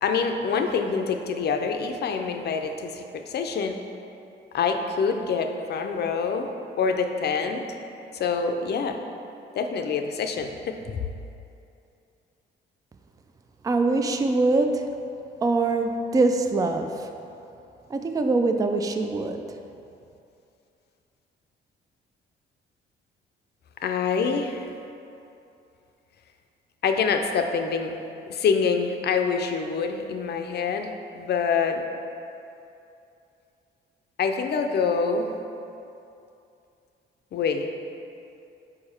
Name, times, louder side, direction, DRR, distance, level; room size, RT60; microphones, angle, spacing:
voice 1, 0.0-3.8 4.5-6.5 6.8-7.6 8.1-9.0 9.5-11.0 23.8-24.7 26.8-28.0 28.3-31.8 34.2-35.3 37.3-37.7, left 5 dB, 55° left, 5 dB, 0.5 m, -26 dB
voice 2, 13.6-14.9 15.4-17.1 17.9-19.4, right 3 dB, 20° right, 5 dB, 0.3 m, -23 dB
4.8 x 4.7 x 4.3 m, 2.7 s
cardioid pair, 90°, 20 cm